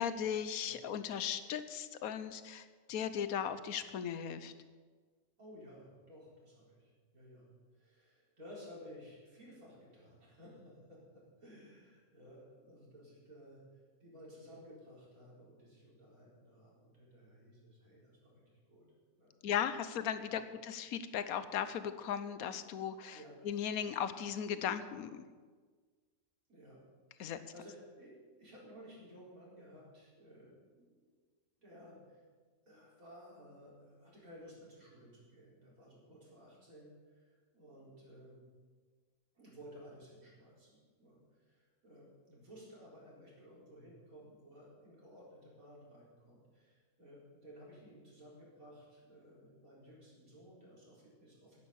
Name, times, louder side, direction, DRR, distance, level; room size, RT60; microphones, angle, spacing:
voice 1, 0.0-4.5 19.4-23.2 23.4-25.3 27.2-27.4, left 8 dB, 90° left, 12 dB, 1.2 m, -37 dB
voice 2, 5.4-18.8 19.2-19.3 23.1-23.3 26.5-26.8 27.1-31.2 31.6-32.2 32.6-38.4 39.3-51.7, equal, 75° right, -5 dB, 4.7 m, -56 dB
11.0 x 10.0 x 7.2 m, 1.5 s
omnidirectional pair, 1.5 m